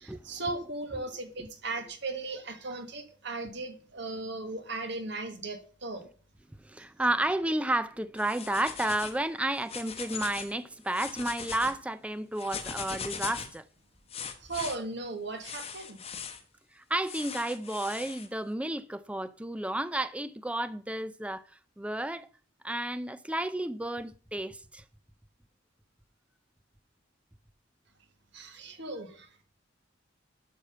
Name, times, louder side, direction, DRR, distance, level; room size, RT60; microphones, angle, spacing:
voice 1, 0.0-6.1 14.4-16.0 28.3-29.4, right 2 dB, 60° right, 1.5 m, -37 dB
voice 2, 6.6-13.6 16.7-21.4 21.8-22.3 22.6-24.8, right 1 dB, 5° right, 0.4 m, -32 dB
sound 1, 8.2-9.2 9.6-10.5 10.8-11.7 12.4-13.6 14.1-14.8 15.4-16.4 17.0-18.3, left 6 dB, 30° left, 1.2 m, -40 dB
12.0 x 5.9 x 5.6 m
head